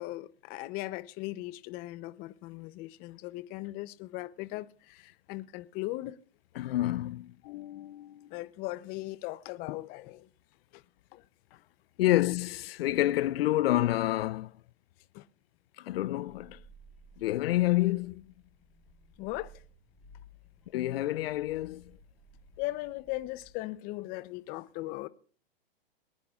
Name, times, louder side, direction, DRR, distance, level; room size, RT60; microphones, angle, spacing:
voice 1, 0.0-6.2 7.4-10.3 10.7-10.8 11.1-11.2 15.1-15.2 19.2-19.5 22.6-25.1, left 18 dB, 30° left, 0.6 m, -38 dB
voice 2, 6.6-7.3 12.0-14.5 15.8-16.6 17.2-18.2 20.7-22.0, left 15 dB, 75° left, 0.5 m, -28 dB
sound 1, 16.3-23.5, equal, 5° right, 4.6 m, -57 dB
23.0 x 10.0 x 2.4 m
hypercardioid pair, 135°, 30 cm